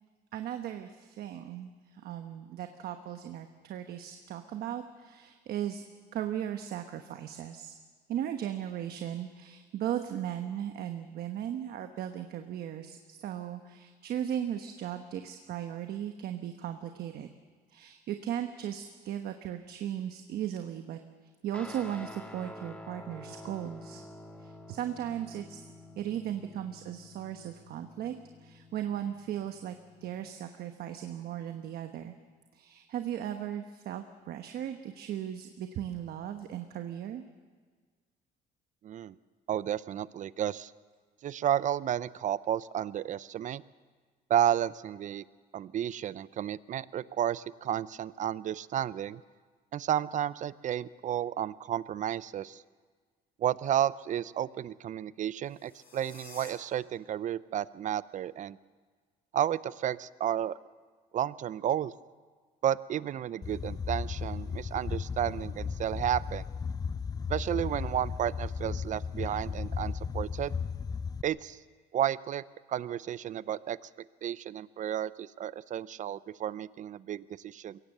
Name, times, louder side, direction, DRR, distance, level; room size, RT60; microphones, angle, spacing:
voice 1, 0.3-5.8 6.1-7.7 8.1-17.3 17.7-21.0 21.4-24.0 24.4-25.7 26.0-29.8 30.0-32.1 32.5-37.2, right 10 dB, 65° right, 6 dB, 1.1 m, -37 dB
Guitar, 21.5-30.3, left 1 dB, 5° left, 1.7 m, -49 dB
voice 2, 38.8-39.2 39.5-40.7 41.2-43.6 44.3-45.2 45.5-49.2 49.7-52.6 53.4-58.6 59.3-60.6 61.1-61.9 62.6-66.4 67.3-70.5 71.2-71.6 71.9-72.4 72.7-73.8 74.2-77.8, right 10 dB, 45° right, 18 dB, 0.6 m, -32 dB
sound 1, 55.4-56.5, left 4 dB, 60° left, 6.9 m, -51 dB
sound 2, 63.4-71.2, left 5 dB, 20° left, 0.5 m, -35 dB
22.5 x 17.5 x 6.7 m, 1.5 s
cardioid pair, 110°, 17 cm